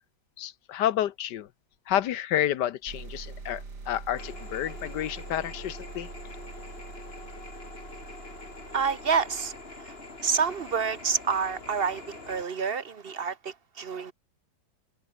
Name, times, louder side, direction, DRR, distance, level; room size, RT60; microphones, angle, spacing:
voice 1, 0.4-1.5 1.9-6.1, left 11 dB, 85° left, 1.5 m, -30 dB
sound 1, 2.9-10.4, right 4 dB, 75° right, 4.1 m, -44 dB
sound 2, 4.2-12.5, left 3 dB, 35° left, 3.4 m, -45 dB
voice 2, 8.7-9.5 9.9-10.0 10.2-14.1, right 6 dB, 40° right, 1.0 m, -28 dB
omnidirectional pair, 1.8 m